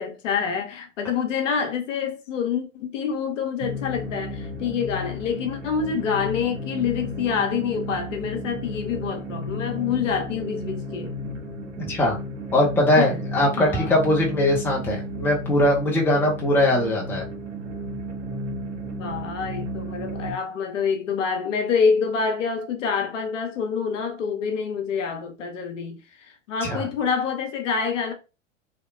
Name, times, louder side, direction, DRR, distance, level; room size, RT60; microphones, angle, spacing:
voice 1, 0.0-11.1 13.0-13.1 13.6-13.9 18.8-28.1, left 6 dB, 70° left, 0.7 m, -27 dB
sound 1, 3.6-20.3, equal, 70° right, 0.9 m, -33 dB
voice 2, 11.9-12.2 12.5-17.2 26.6-26.8, left 1 dB, 5° left, 0.5 m, -21 dB
2.8 x 2.1 x 2.2 m
hypercardioid pair, 95°, 39 cm